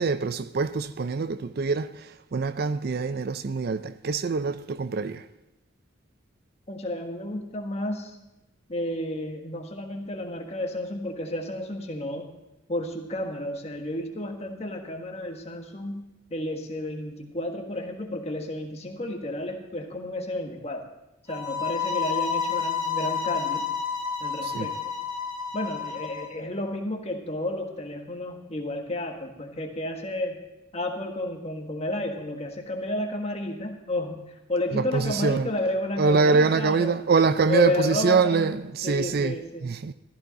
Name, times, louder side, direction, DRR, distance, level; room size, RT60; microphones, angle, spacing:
voice 1, 0.0-5.3 24.4-24.7 34.7-35.5 36.0-39.4 39.6-39.9, right 4 dB, 50° right, 0.4 m, -24 dB
voice 2, 6.7-8.2 8.7-12.3 12.7-20.9 21.3-23.7 24.2-24.8 25.5-30.4 30.7-36.9 37.5-38.5 38.8-39.7, left 1 dB, 30° left, 1.6 m, -31 dB
sound 1, 21.3-26.3, left 6 dB, 20° right, 2.5 m, -30 dB
14.5 x 13.5 x 4.1 m
head